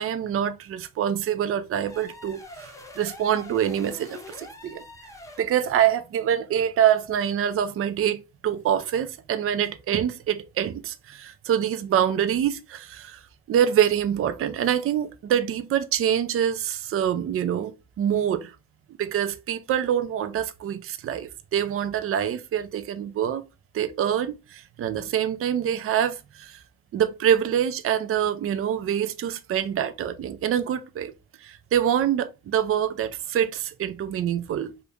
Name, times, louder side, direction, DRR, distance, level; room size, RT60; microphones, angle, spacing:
voice 1, 0.0-4.8 5.4-13.2 13.5-18.5 19.0-23.4 23.7-26.6 26.9-31.1 31.4-34.7, right 9 dB, 50° right, 0.5 m, -25 dB
sound 1, 1.9-5.6, left 1 dB, 10° left, 0.7 m, -44 dB
2.9 x 2.5 x 3.4 m
cardioid pair, 90°, 30 cm